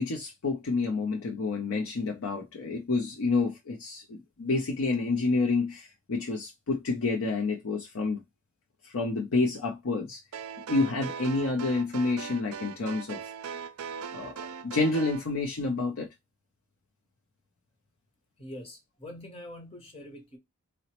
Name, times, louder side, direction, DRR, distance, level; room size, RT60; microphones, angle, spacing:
voice 1, 0.0-8.2 8.8-10.2 10.7-13.2 14.1-16.1, left 3 dB, 70° left, 0.5 m, -29 dB
sound 1, 10.3-15.3, right 7 dB, 80° right, 0.4 m, -40 dB
voice 2, 18.4-20.4, left 1 dB, 25° left, 0.8 m, -44 dB
3.9 x 2.0 x 2.9 m
head